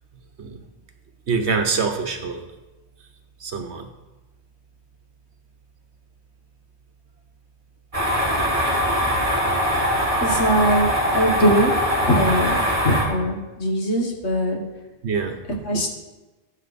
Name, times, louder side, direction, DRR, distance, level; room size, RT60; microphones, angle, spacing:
voice 1, 1.3-2.4 3.4-3.9 15.0-15.4, right 5 dB, 65° right, 6 dB, 1.3 m, -24 dB
sound 1, 7.9-13.0, equal, 30° right, 2.7 m, -22 dB
voice 2, 10.2-11.7 12.0-14.6 15.6-15.9, equal, 65° left, 1 dB, 1.8 m, -21 dB
13.0 x 7.3 x 4.2 m, 1.1 s
omnidirectional pair, 1.2 m